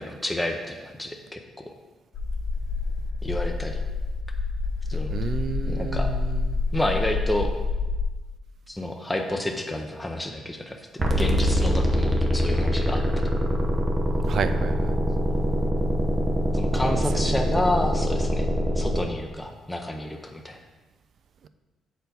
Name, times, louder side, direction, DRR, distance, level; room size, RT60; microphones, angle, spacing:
voice 1, 0.0-1.7 3.2-3.8 4.9-5.3 5.7-6.1 6.7-7.5 8.7-13.2 16.5-18.5 18.8-20.6, left 1 dB, 10° left, 2 dB, 0.6 m, -30 dB
sound 1, 2.1-8.0, left 3 dB, 70° left, 0.9 m, -28 dB
voice 2, 5.1-6.6 14.2-14.9 16.7-17.5, right 6 dB, 60° right, 11 dB, 0.4 m, -32 dB
sound 2, 11.0-19.0, equal, 30° right, 0.9 m, -24 dB
7.0 x 4.4 x 4.0 m, 1.2 s
cardioid pair, 90°, 0 cm